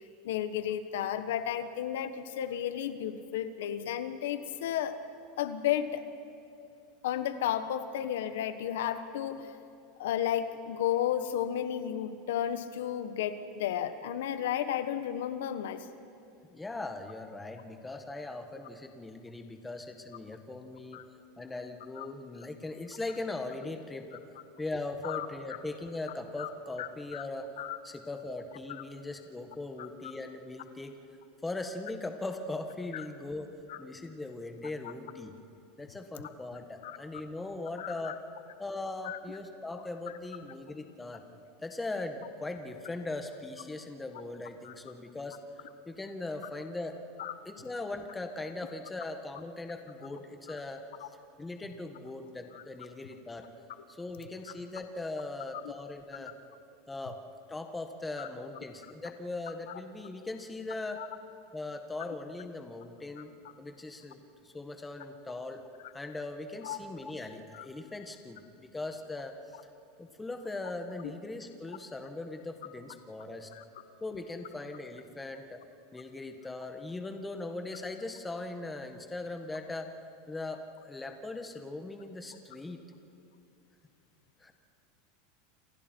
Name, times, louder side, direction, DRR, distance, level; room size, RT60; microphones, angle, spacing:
voice 1, 0.2-5.0 5.4-6.0 7.0-9.5 10.0-15.9 20.9-21.0 22.0-22.1 25.0-25.3 26.4-26.5 26.8-27.3 27.6-27.8 32.9-33.0 33.7-33.8 36.8-37.0 37.8-38.1 39.0-39.2 44.6-44.7 47.2-47.3 52.5-52.6 56.1-56.2 58.2-58.3 61.0-61.1 66.6-66.8 67.5-67.6 73.5-73.6, left 10 dB, 85° left, 11 dB, 1.3 m, -33 dB
voice 2, 16.5-21.0 21.4-24.2 24.6-27.5 27.8-30.9 31.4-33.5 33.8-35.3 35.8-38.2 38.6-41.2 41.6-45.4 45.8-47.0 47.4-50.8 51.4-53.5 53.9-56.3 56.9-57.2 57.5-61.0 61.5-63.3 63.6-65.6 65.9-69.6 70.0-73.5 74.0-75.6 75.9-79.9 80.3-82.8 84.4-84.5, left 2 dB, 10° left, 5 dB, 1.6 m, -40 dB
28.5 x 27.0 x 4.6 m, 2.8 s
supercardioid pair, 145°, 0 cm